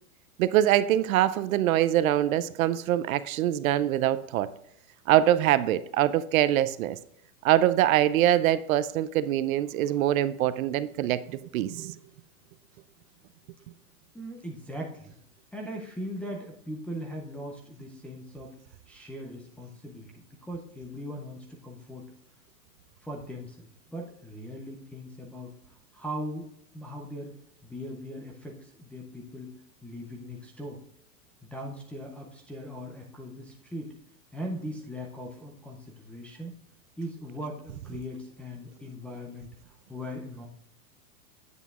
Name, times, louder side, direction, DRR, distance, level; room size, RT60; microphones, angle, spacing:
voice 1, 0.4-4.5 5.1-7.0 7.4-11.9, right 12 dB, 65° right, 0.6 m, -24 dB
voice 2, 14.1-15.2 15.5-18.6 18.9-22.1 23.0-25.6 25.9-26.5 26.7-27.3 27.6-29.5 29.8-30.8 31.4-33.9 34.3-36.6 37.0-40.5, equal, 5° left, 0.4 m, -39 dB
9.3 x 8.0 x 2.4 m
hypercardioid pair, 130°, 47 cm